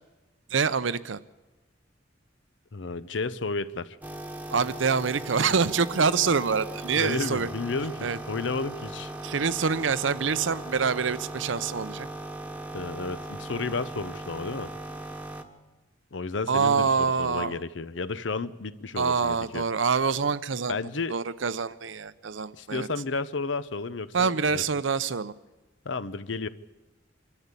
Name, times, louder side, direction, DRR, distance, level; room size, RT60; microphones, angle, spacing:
voice 1, 0.5-1.2 4.5-7.5 8.0-8.2 9.2-12.1 16.5-17.6 19.0-22.9 24.1-25.3, right 5 dB, 80° right, 15 dB, 0.7 m, -26 dB
voice 2, 2.7-4.0 7.0-9.1 12.7-14.7 16.1-19.6 20.7-21.2 22.5-24.6 25.8-26.5, left 3 dB, 75° left, 15 dB, 0.8 m, -32 dB
sound 1, 4.0-15.4, right 1 dB, 10° right, 1.2 m, -38 dB
25.0 x 13.0 x 8.3 m, 1.2 s
head